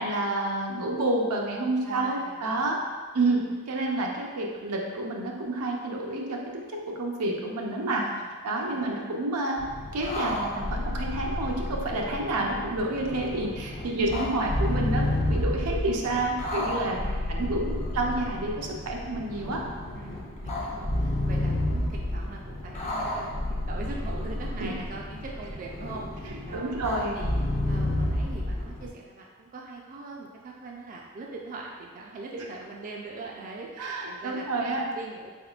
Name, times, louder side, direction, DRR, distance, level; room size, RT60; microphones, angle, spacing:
voice 1, 0.0-2.8 3.1-3.4 3.7-6.4 6.9-8.0 8.4-9.6 9.9-17.0 17.3-19.6 24.6-24.7 26.5-27.2 33.8-34.8, right 2 dB, 85° right, 0 dB, 0.6 m, -29 dB
voice 2, 1.8-2.8 3.5-3.6 7.9-8.3 8.6-9.0 13.8-14.3 17.0-17.5 17.9-18.1 19.9-26.8 27.1-35.3, right 3 dB, 35° right, -1 dB, 0.3 m, -41 dB
sound 1, 9.6-28.9, left 1 dB, 30° left, 0.4 m, -31 dB
3.9 x 3.5 x 2.3 m, 1.5 s
head